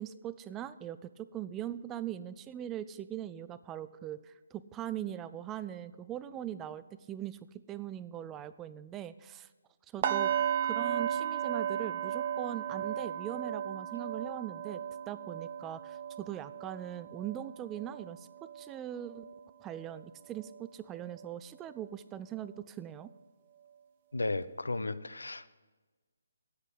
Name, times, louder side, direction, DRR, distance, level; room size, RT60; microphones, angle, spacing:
voice 1, 0.0-7.4 7.7-9.5 9.9-10.3 10.6-14.8 15.1-19.3 19.6-23.1, right 11 dB, 15° right, 14 dB, 0.3 m, -41 dB
sound 1, 10.0-20.0 20.3-20.6 21.0-21.1, right 9 dB, 30° right, 0.8 m, -35 dB
voice 2, 24.1-25.5, left 2 dB, 70° left, 14 dB, 0.6 m, -34 dB
9.2 x 8.2 x 8.4 m, 1.3 s
figure-of-eight pair, 140°, 0 cm